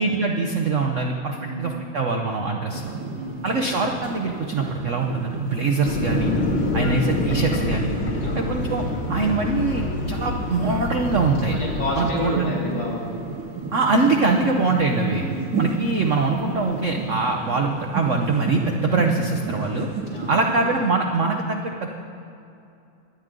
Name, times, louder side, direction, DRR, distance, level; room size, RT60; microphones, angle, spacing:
voice 1, 0.0-2.9 3.4-6.3 6.7-7.9 8.3-8.8 9.1-11.6 12.0-12.5 13.7-15.2 15.6-19.9 20.3-21.9, right 3 dB, 90° right, 2 dB, 0.6 m, -23 dB
voice 2, 1.3-1.8 3.1-3.7 8.2-8.5 11.5-13.0 15.1-15.5 20.1-20.4, left 1 dB, 80° left, -5 dB, 4.8 m, -30 dB
sound 1, 2.7-20.6, right 4 dB, 55° right, 1.3 m, -32 dB
sound 2, 5.8-12.2, left 2 dB, 55° left, 1.8 m, -27 dB
23.0 x 9.2 x 3.7 m, 2.6 s
omnidirectional pair, 2.4 m